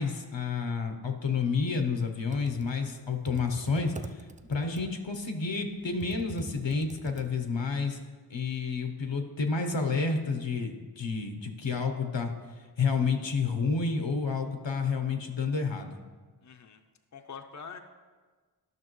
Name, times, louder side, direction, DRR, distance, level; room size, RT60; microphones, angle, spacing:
voice 1, 0.0-4.2 4.5-8.0 8.3-12.3 12.8-16.0, left 4 dB, 80° left, 5 dB, 0.9 m, -30 dB
Computer keyboard, 2.1-7.7, right 3 dB, 20° right, 0.3 m, -45 dB
voice 2, 16.4-16.8 17.1-17.8, left 6 dB, 40° left, 6 dB, 0.5 m, -44 dB
12.0 x 5.9 x 3.1 m, 1.4 s
wide cardioid pair, 45°, 44 cm